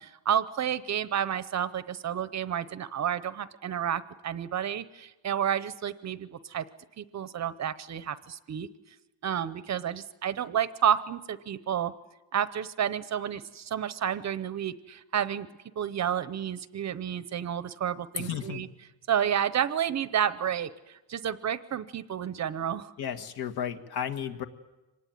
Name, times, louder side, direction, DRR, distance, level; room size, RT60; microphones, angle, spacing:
voice 1, 0.0-6.6 7.0-8.7 9.2-11.9 12.3-15.5 15.8-18.7 19.1-22.9, right 9 dB, 40° right, 14 dB, 0.8 m, -30 dB
voice 2, 18.2-18.7 23.0-24.4, left 8 dB, 60° left, 6 dB, 1.7 m, -33 dB
25.0 x 19.5 x 9.4 m, 1.1 s
cardioid pair, 145°, 43 cm